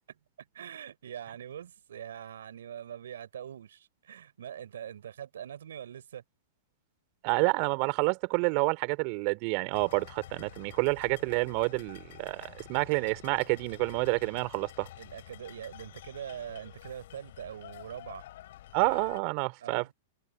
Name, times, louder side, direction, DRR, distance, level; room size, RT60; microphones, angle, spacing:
voice 1, 0.4-6.2 15.0-18.2 19.6-19.9, right 9 dB, 75° right, 4.9 m, -43 dB
voice 2, 7.2-14.9 18.7-19.9, right 31 dB, 50° right, 2.9 m, -29 dB
sound 1, 9.7-19.2, left 14 dB, 65° left, 5.6 m, -49 dB
hypercardioid pair, 115°, 0 cm